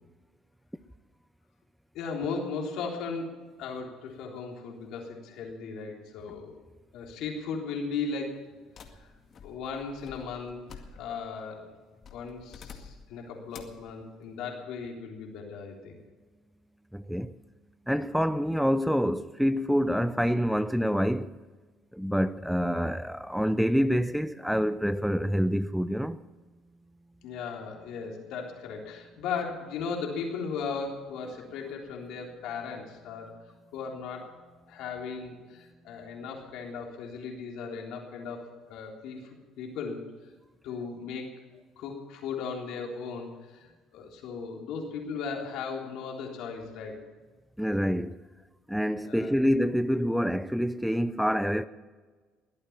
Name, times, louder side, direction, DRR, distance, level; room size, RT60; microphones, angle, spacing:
voice 1, 1.9-6.6 6.9-8.4 8.9-9.1 9.4-11.7 12.1-16.0 27.2-33.3 33.7-34.3 34.7-40.0 40.6-41.3 41.8-47.0 49.0-49.3, left 5 dB, 75° left, 3.6 m, -37 dB
sound 1, 8.8-11.3 12.0-13.1 13.5-13.9, left 6 dB, 50° left, 2.0 m, -49 dB
voice 2, 16.9-17.4 17.9-21.3 21.9-26.2 33.2-33.3 47.6-48.2 48.7-51.6, equal, ahead, 0.6 m, -27 dB
21.0 x 8.9 x 7.3 m
supercardioid pair, 80°, 0 cm